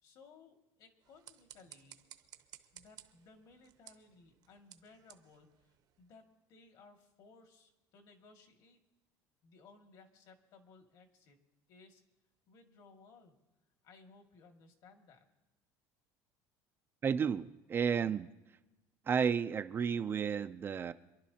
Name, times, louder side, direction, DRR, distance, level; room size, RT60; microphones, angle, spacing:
voice 1, 0.0-2.0 2.7-8.8 9.4-11.4 11.7-12.0 12.5-13.3 13.8-15.3, left 4 dB, 55° left, 4 dB, 2.1 m, -60 dB
sound 1, 1.0-6.3, right 11 dB, 50° right, 0.8 m, -58 dB
voice 2, 17.0-18.3 19.1-20.9, right 7 dB, 25° right, 11 dB, 0.4 m, -32 dB
26.5 x 11.5 x 2.8 m, 1.0 s
cardioid pair, 145°, 8 cm